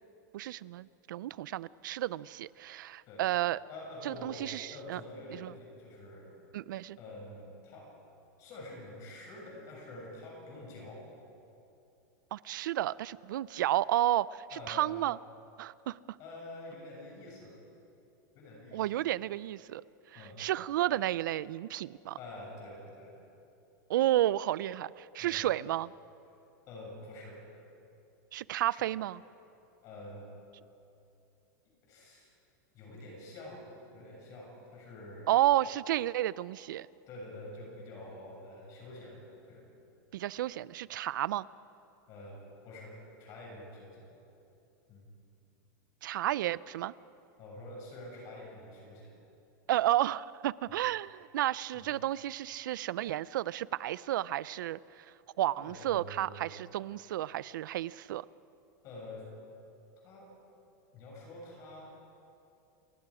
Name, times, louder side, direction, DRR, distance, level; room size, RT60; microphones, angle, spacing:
voice 1, 0.3-3.6 4.0-5.0 5.3-5.5 6.5-7.0 12.3-15.2 15.6-16.2 18.7-19.8 20.1-22.2 23.9-25.9 28.3-29.2 35.3-36.9 40.1-41.5 46.0-46.9 49.7-55.1 55.4-58.2, right 13 dB, 90° right, 20 dB, 0.5 m, -32 dB
voice 2, 3.7-4.5 4.7-6.3 7.0-7.9 8.4-11.0 14.5-14.9 16.2-17.5 18.3-18.9 20.1-20.4 22.2-23.2 25.2-25.5 26.7-27.4 28.7-28.9 29.8-30.3 31.8-32.3 32.7-33.7 33.9-35.3 37.1-39.7 42.1-44.1 44.9-45.1 47.4-49.1 51.7-51.9 55.5-56.6 58.8-59.2 60.0-60.3 60.9-61.9, left 1 dB, 35° left, -2 dB, 6.7 m, -47 dB
29.0 x 20.5 x 4.9 m, 2.7 s
supercardioid pair, 170°, 10 cm